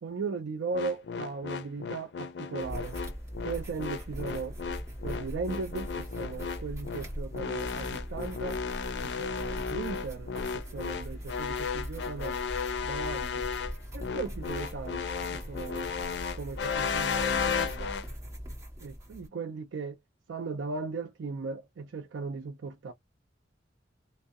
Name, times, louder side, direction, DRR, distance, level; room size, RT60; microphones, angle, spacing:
voice 1, 0.0-3.0 3.4-4.6 5.0-8.6 9.0-12.4 12.8-13.4 13.9-15.9 16.3-18.0 18.8-20.0 20.3-22.9, right 4 dB, 85° right, 0.4 m, -37 dB
sound 1, 0.7-18.1, left 6 dB, 60° left, 0.4 m, -34 dB
sound 2, 2.6-19.3, equal, 15° right, 1.3 m, -40 dB
2.6 x 2.0 x 2.3 m
head